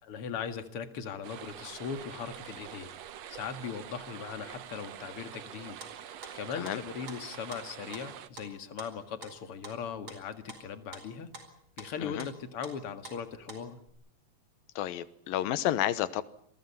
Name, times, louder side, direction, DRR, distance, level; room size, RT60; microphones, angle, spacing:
voice 1, 0.0-2.9 3.3-5.8 6.3-11.3 11.8-13.8, left 7 dB, 45° left, 9 dB, 2.4 m, -39 dB
sound 1, 1.2-8.3, right 10 dB, 60° right, 1.9 m, -46 dB
sound 2, 5.8-6.8 7.1-13.9, right 3 dB, 35° right, 5.3 m, -48 dB
voice 2, 14.8-16.2, left 12 dB, 85° left, 15 dB, 2.9 m, -31 dB
28.0 x 22.5 x 5.8 m, 0.69 s
omnidirectional pair, 4.0 m